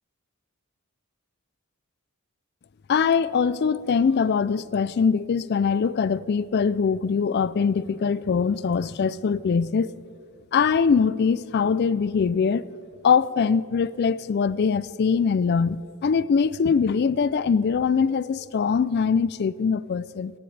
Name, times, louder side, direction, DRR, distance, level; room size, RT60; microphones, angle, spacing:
voice 1, 2.9-9.9 10.5-12.6 13.0-20.3, left 6 dB, 50° left, 0.3 m, -22 dB
18.0 x 15.0 x 3.3 m
head